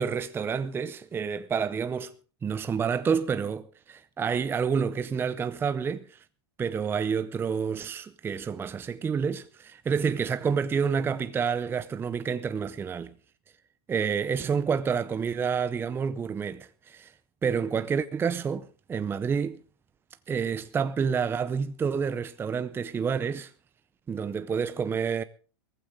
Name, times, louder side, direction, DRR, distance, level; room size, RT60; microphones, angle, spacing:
voice 1, 0.0-2.1 2.4-6.2 6.6-13.1 13.9-17.1 17.4-19.6 20.3-23.5 24.1-25.2, right 6 dB, 15° right, 0.6 m, -29 dB
18.5 x 15.0 x 3.7 m
hypercardioid pair, 120°, 13 cm